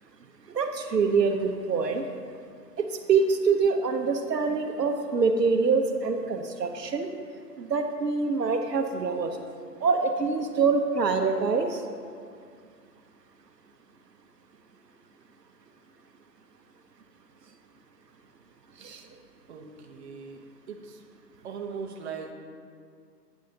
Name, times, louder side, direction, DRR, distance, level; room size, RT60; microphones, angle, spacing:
voice 1, 0.5-2.1 2.8-7.1 7.6-9.4 9.8-11.8 18.8-19.0, right 4 dB, 75° right, 5 dB, 0.9 m, -25 dB
voice 2, 19.5-21.0 21.4-22.3, right 6 dB, 40° right, 3 dB, 0.9 m, -39 dB
11.0 x 9.2 x 2.8 m, 2.2 s
figure-of-eight pair, 135°, 49 cm